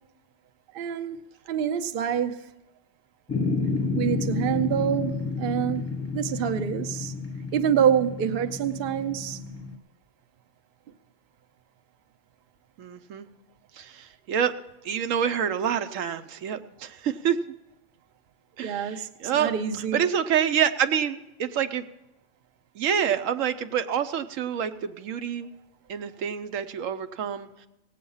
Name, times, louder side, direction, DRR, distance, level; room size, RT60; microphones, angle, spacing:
voice 1, 0.7-1.2 1.5-2.5 3.9-5.9 6.1-7.1 7.5-9.4 18.6-20.0, right 9 dB, 55° right, 0.7 m, -26 dB
sound 1, 3.3-9.8, left 4 dB, 15° left, 0.7 m, -30 dB
voice 2, 12.8-13.3 13.7-14.5 14.8-17.4 18.6-19.5 19.8-21.8 22.8-25.5 25.9-27.5, right 8 dB, 75° right, 1.0 m, -27 dB
17.5 x 8.4 x 5.5 m
omnidirectional pair, 1.4 m